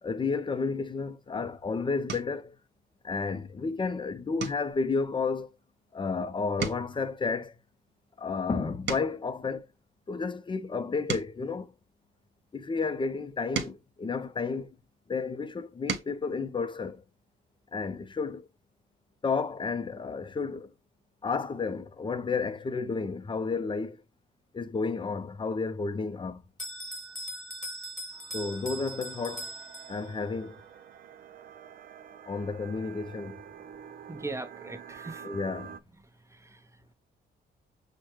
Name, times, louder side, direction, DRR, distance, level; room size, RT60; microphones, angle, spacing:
voice 1, 0.0-2.6 3.0-5.5 5.9-7.6 8.2-9.7 10.1-11.7 12.5-14.7 15.1-17.0 17.7-18.5 19.2-20.7 21.2-24.0 24.5-26.4 28.3-29.5 29.9-30.6 32.3-33.4 35.2-35.8, left 4 dB, 25° left, 0.6 m, -31 dB
sound 1, 1.2-1.5 2.0-2.5 3.0-3.3 3.6-3.8 4.3-6.2 6.5-9.4 10.0-12.5 13.1-15.0 15.5-16.2 17.6-17.7 18.0-18.2, right 6 dB, 60° right, 1.1 m, -40 dB
Bell, 26.6-30.3, right 1 dB, ahead, 1.5 m, -40 dB
sound 2, 28.1-35.8, right 8 dB, 45° right, 0.4 m, -48 dB
voice 2, 34.1-35.3 36.1-36.9, right 3 dB, 15° right, 0.8 m, -41 dB
6.2 x 2.2 x 3.0 m
cardioid pair, 90°, 20 cm